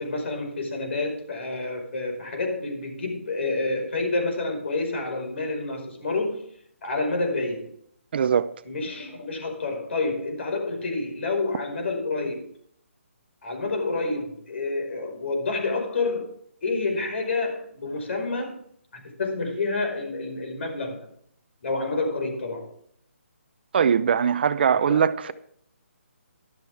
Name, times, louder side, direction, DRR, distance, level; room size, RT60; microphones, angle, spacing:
voice 1, 0.0-6.5 6.8-7.7 8.7-12.5 13.4-16.3 16.6-18.6 18.9-21.1 21.6-22.7 24.6-25.3, left 3 dB, 55° left, 5.2 m, -29 dB
voice 2, 8.1-8.5 23.7-25.3, right 7 dB, 45° right, 0.7 m, -21 dB
14.0 x 12.0 x 3.5 m
figure-of-eight pair, 150°, 7 cm